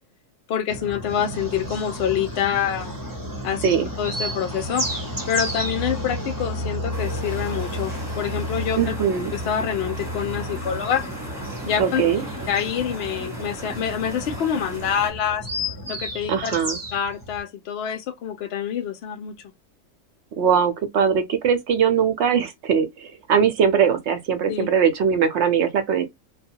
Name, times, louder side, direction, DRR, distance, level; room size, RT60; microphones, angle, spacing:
voice 1, 0.5-2.9 3.4-3.6 4.0-4.9 5.3-9.0 9.3-11.1 11.7-12.0 12.5-15.5 15.9-16.5 16.9-19.3 24.5-24.7, left 8 dB, 75° left, 0.5 m, -26 dB
sound 1, 0.7-17.4, equal, 20° right, 0.5 m, -32 dB
sound 2, 6.9-15.1, right 2 dB, ahead, 1.0 m, -39 dB
voice 2, 8.8-9.3 11.8-12.2 16.3-16.8 20.4-26.0, right 7 dB, 65° right, 0.7 m, -21 dB
2.4 x 2.3 x 2.7 m
omnidirectional pair, 1.6 m